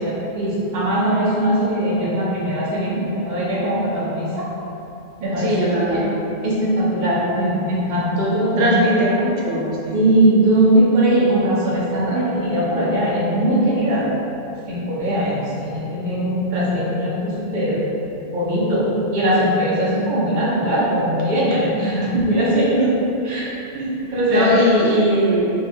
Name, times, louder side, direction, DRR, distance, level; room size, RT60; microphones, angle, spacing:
voice 1, 0.0-4.5 5.2-5.5 5.9-6.0 6.4-9.2 9.9-14.1 14.7-17.8 18.3-22.9 23.2-24.5, right 1 dB, 45° right, -7 dB, 0.8 m, -20 dB
voice 2, 5.4-6.1 8.6-10.1 24.3-25.5, equal, 85° right, -5 dB, 1.1 m, -19 dB
5.0 x 2.3 x 2.7 m, 2.9 s
omnidirectional pair, 1.3 m